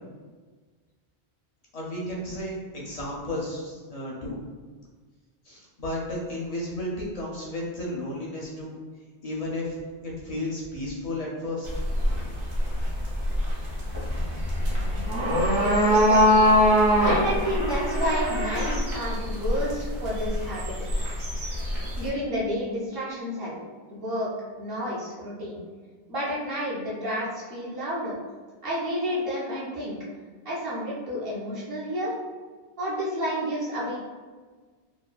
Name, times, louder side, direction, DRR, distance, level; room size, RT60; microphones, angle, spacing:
voice 1, 1.7-4.4 5.4-8.7 9.2-9.8 10.0-11.7, left 1 dB, 50° left, -4 dB, 0.5 m, -33 dB
sound 1, 11.7-22.1, equal, 80° right, 1.1 m, -23 dB
voice 2, 15.5-16.5 17.0-20.7 22.0-23.6 23.9-24.3 24.6-25.6 26.1-28.1 28.6-29.9 30.4-32.1 32.8-34.0, equal, 60° right, -7 dB, 0.9 m, -30 dB
3.0 x 2.4 x 2.2 m, 1.5 s
omnidirectional pair, 1.1 m